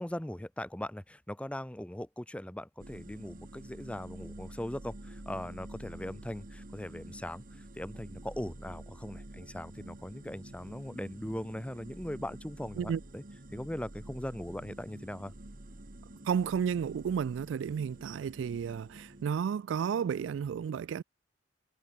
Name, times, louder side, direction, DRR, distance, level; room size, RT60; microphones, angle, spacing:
voice 1, 0.0-7.4 7.8-13.2 13.5-15.3, left 1 dB, 5° left, 0.7 m, -40 dB
sound 1, 2.8-19.3, right 1 dB, 50° right, 1.6 m, -48 dB
voice 2, 16.2-21.0, right 7 dB, 85° right, 0.3 m, -32 dB
head